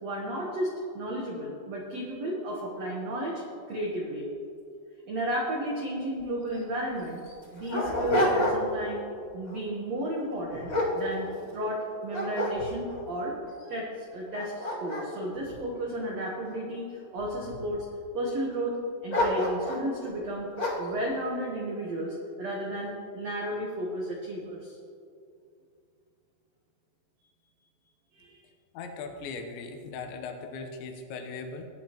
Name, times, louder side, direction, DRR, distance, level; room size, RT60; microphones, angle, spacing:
voice 1, 0.0-3.4 3.7-4.3 5.1-7.2 7.5-9.0 9.3-13.3 13.7-17.9 18.1-18.8 19.0-20.5 20.8-24.8 28.1-28.4, right 1 dB, 90° right, -2 dB, 1.4 m, -33 dB
Dog, 6.2-6.3 6.5-6.6 7.2-8.9 9.3-9.6 10.2-11.7 12.1-13.0 13.6-13.7 14.2-16.5 17.2-17.8 19.1-19.9 20.6-21.0, left 1 dB, 35° left, 2.1 m, -30 dB
voice 2, 28.7-31.7, left 4 dB, 85° left, 5 dB, 3.3 m, -39 dB
17.5 x 9.7 x 3.0 m, 2.5 s
omnidirectional pair, 5.0 m